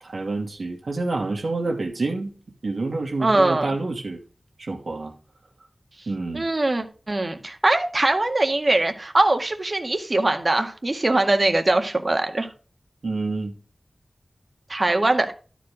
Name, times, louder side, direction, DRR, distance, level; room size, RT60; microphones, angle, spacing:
voice 1, 0.0-2.3 2.6-4.2 4.6-5.1 6.1-6.5 13.0-13.5, right 3 dB, 80° right, 2.3 m, -28 dB
voice 2, 3.2-3.7 6.3-12.5 14.7-15.3, right 2 dB, 45° right, 1.7 m, -22 dB
12.5 x 5.1 x 5.0 m
wide cardioid pair, 70°, 0 cm